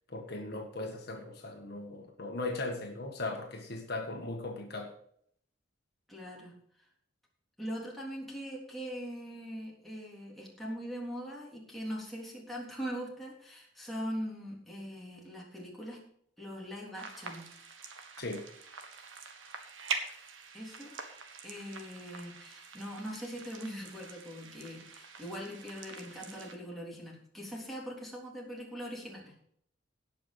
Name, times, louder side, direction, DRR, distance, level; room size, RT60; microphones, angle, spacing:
voice 1, 0.1-4.9 18.2-18.4, left 2 dB, 55° left, 2 dB, 1.6 m, -38 dB
voice 2, 6.1-6.5 7.6-16.0 16.4-17.5 20.5-20.9 21.4-29.4, equal, ahead, -5 dB, 3.5 m, -41 dB
sound 1, 16.9-26.5, right 5 dB, 85° right, 1.5 m, -44 dB
17.5 x 6.0 x 5.2 m, 0.66 s
head